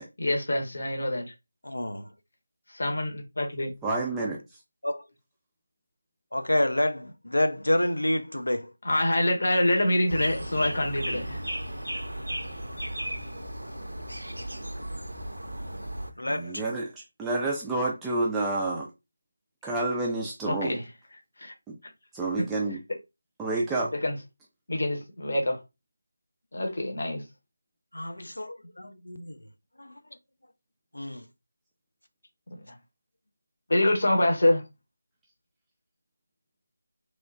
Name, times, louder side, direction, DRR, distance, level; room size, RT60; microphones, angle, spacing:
voice 1, 0.2-1.3 2.7-3.7 8.8-11.4 20.5-20.9 21.4-21.5 22.4-22.5 23.9-24.2 24.7-25.6 26.5-27.2 32.5-32.7 33.7-34.7, left 1 dB, 55° left, 0.8 m, -26 dB
voice 2, 1.6-2.1 4.8-5.0 6.3-8.7 16.2-16.6 27.9-29.4 29.8-30.0 30.9-31.2, left 1 dB, 75° left, 0.4 m, -28 dB
voice 3, 3.8-4.4 16.3-18.9 19.6-20.7 21.7-21.8 22.1-22.8 23.4-23.9, right 2 dB, 5° right, 0.3 m, -29 dB
sound 1, 10.1-16.1, right 1 dB, 80° right, 0.5 m, -35 dB
3.0 x 2.0 x 2.4 m
figure-of-eight pair, 160°, 0 cm